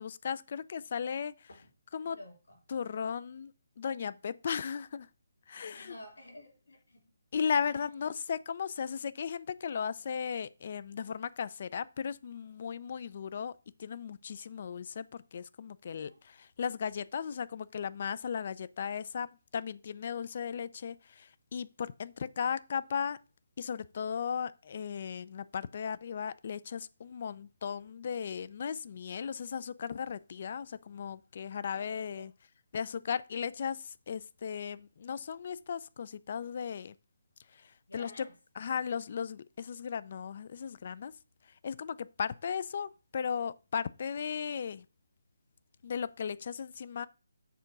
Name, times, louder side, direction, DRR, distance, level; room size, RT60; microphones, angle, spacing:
voice 1, 0.0-1.5 1.9-2.2 2.7-3.5 3.8-5.1 5.5-5.9 7.3-13.5 13.8-23.2 23.6-32.3 32.7-36.9 37.5-37.6 37.9-38.2 38.6-41.1 41.6-44.8 45.8-47.1, left 7 dB, 45° left, 0.4 m, -36 dB
voice 2, 2.0-2.6 5.7-7.1 7.7-7.8 15.8-16.2 31.7-32.3 37.9-38.3, left 1 dB, 75° left, 3.9 m, -52 dB
6.8 x 3.7 x 5.9 m
hypercardioid pair, 155°, 0 cm